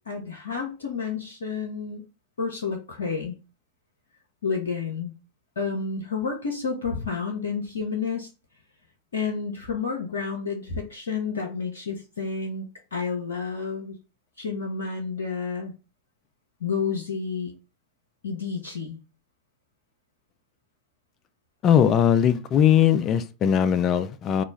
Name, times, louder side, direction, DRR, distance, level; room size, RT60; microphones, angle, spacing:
voice 1, 0.1-2.0 2.4-3.4 4.4-5.1 5.6-8.3 9.1-12.7 12.9-14.0 14.4-15.7 16.6-17.5 18.2-19.0, left 5 dB, 70° left, 0.6 m, -30 dB
voice 2, 21.6-24.4, left 9 dB, 30° left, 0.3 m, -20 dB
3.0 x 2.3 x 3.9 m
figure-of-eight pair, 90°, 0 cm